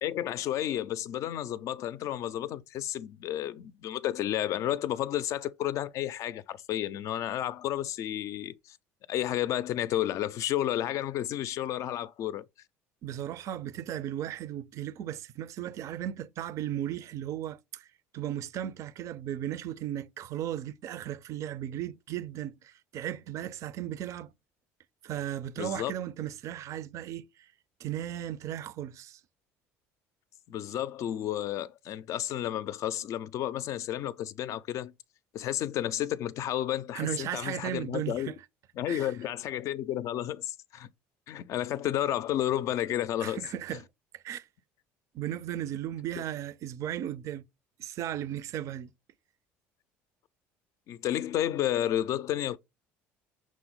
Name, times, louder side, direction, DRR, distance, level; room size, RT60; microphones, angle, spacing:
voice 1, 0.0-8.8 9.1-12.5 25.6-25.9 30.5-34.9 35.3-38.3 38.8-40.9 41.3-43.4 50.9-52.6, left 12 dB, 55° left, 0.4 m, -31 dB
voice 2, 13.0-17.9 18.1-24.3 25.0-27.3 27.8-29.2 36.9-38.4 38.9-39.1 43.2-43.9 44.1-44.5 45.1-47.4 47.8-48.9, right 11 dB, 55° right, 0.4 m, -36 dB
6.1 x 2.0 x 3.8 m
supercardioid pair, 80°, 6 cm